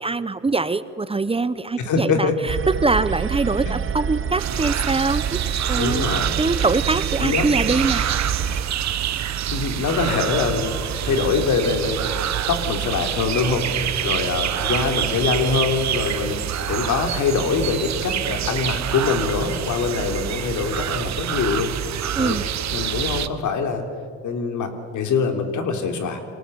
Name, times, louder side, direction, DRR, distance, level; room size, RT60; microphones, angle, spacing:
voice 1, 0.0-5.4 5.7-6.0 6.4-8.1 22.2-22.5, right 3 dB, 20° right, 14 dB, 0.9 m, -23 dB
voice 2, 1.8-2.4 3.6-3.7 5.8-6.4 7.2-7.5 9.5-12.0 12.5-21.7 22.2-22.4 22.7-23.8 24.2-26.2, left 5 dB, 75° left, 6 dB, 3.4 m, -24 dB
sound 1, 2.5-8.6, right 7 dB, 45° right, 1.1 m, -28 dB
sound 2, 4.4-23.3, right 10 dB, 65° right, 1.3 m, -26 dB
27.5 x 24.0 x 8.0 m, 2.2 s
cardioid pair, 90°, 30 cm